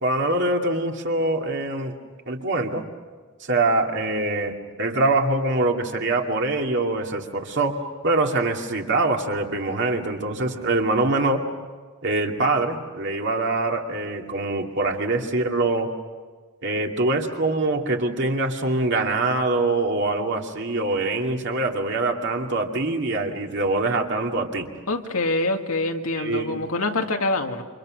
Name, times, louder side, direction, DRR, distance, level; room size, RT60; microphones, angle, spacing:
voice 1, 0.0-2.0 2.3-2.8 3.4-11.4 12.0-15.9 16.6-24.7 26.2-26.6, right 2 dB, 55° right, 2 dB, 2.4 m, -24 dB
voice 2, 24.9-27.6, left 2 dB, 90° left, 3 dB, 2.1 m, -25 dB
29.0 x 26.5 x 6.5 m, 1.5 s
head